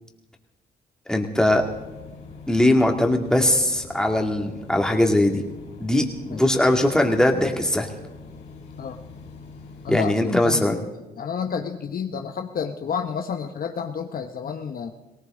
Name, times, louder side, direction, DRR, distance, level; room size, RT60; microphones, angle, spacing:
voice 1, 1.1-1.6 2.5-5.4 5.8-7.9 9.9-10.8, left 1 dB, 5° left, 2 dB, 2.3 m, -20 dB
sound 1, 1.4-10.0, left 4 dB, 85° left, 3.3 m, -43 dB
voice 2, 9.8-10.8 11.2-14.9, left 7 dB, 60° left, 6 dB, 1.0 m, -30 dB
19.0 x 18.0 x 3.8 m, 1.1 s
cardioid pair, 65°, 17 cm